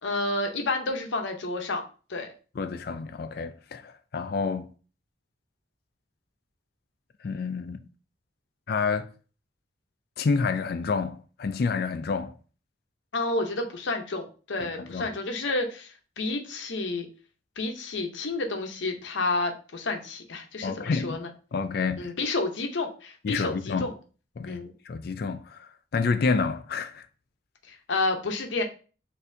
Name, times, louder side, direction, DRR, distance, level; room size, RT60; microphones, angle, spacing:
voice 1, 0.0-1.8 2.1-2.3 13.1-17.1 17.6-21.3 22.0-23.9 24.5-24.7 27.7-28.6, left 2 dB, 75° left, 0.7 m, -30 dB
voice 2, 2.6-4.7 7.2-7.8 8.7-9.1 10.2-12.3 14.6-15.1 20.6-21.2 21.5-22.1 23.2-23.9 24.4-27.1, left 4 dB, 55° left, 0.4 m, -29 dB
6.2 x 2.7 x 2.6 m
head